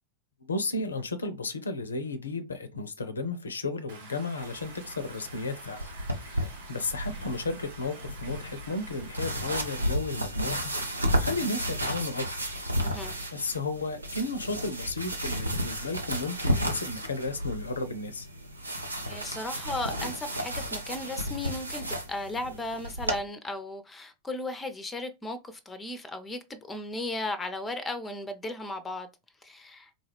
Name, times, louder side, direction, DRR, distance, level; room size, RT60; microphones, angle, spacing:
voice 1, 0.4-5.8 6.2-12.5 13.3-18.3, left 3 dB, 75° left, 0.4 m, -34 dB
Stream, 3.9-9.8, right 3 dB, 65° right, 1.3 m, -48 dB
sound 1, 4.4-23.2, equal, 85° right, 0.6 m, -33 dB
voice 2, 12.8-13.1 19.1-29.1 29.4-29.9, left 2 dB, 10° left, 0.5 m, -36 dB
3.7 x 2.3 x 3.1 m
figure-of-eight pair, 90°, 0 cm